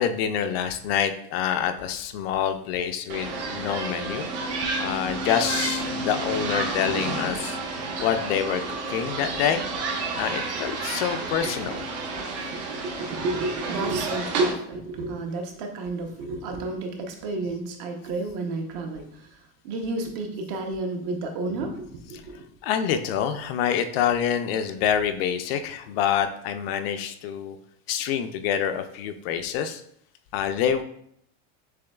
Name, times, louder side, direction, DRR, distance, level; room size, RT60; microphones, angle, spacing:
voice 1, 0.0-4.3 4.8-7.6 8.0-9.6 10.2-11.8 22.6-27.6 27.9-29.8 30.3-30.8, left 9 dB, 60° left, 8 dB, 0.4 m, -26 dB
sound 1, 3.1-14.5, right 3 dB, 70° right, 1.2 m, -30 dB
voice 2, 12.5-22.5, right 2 dB, 45° right, 4 dB, 0.8 m, -31 dB
6.9 x 3.1 x 2.3 m, 0.69 s
supercardioid pair, 175°, 35 cm